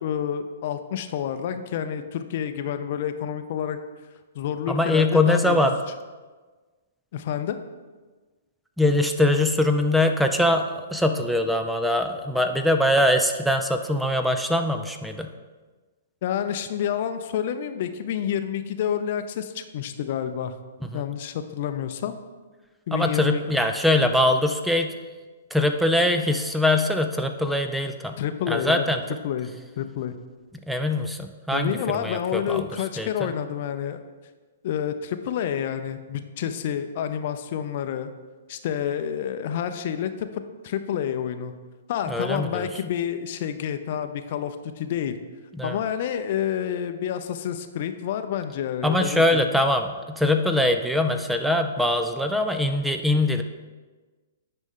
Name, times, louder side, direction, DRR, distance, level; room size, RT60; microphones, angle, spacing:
voice 1, 0.0-3.8 4.3-5.6 7.1-7.6 16.2-20.5 20.9-22.2 22.9-23.4 28.2-28.8 29.2-29.5 29.8-30.1 31.5-34.0 34.6-38.1 38.5-40.3 40.6-41.5 41.9-45.2 45.6-49.4, left 9 dB, 50° left, 9 dB, 0.5 m, -29 dB
voice 2, 4.7-5.8 8.8-15.3 20.9-21.0 22.9-24.9 25.5-28.2 28.5-29.0 30.5-32.7 33.0-33.3 42.1-42.7 45.5-45.8 48.8-53.4, left 1 dB, 5° right, 6 dB, 0.4 m, -22 dB
9.1 x 5.3 x 3.7 m, 1.3 s
figure-of-eight pair, 120°, 0 cm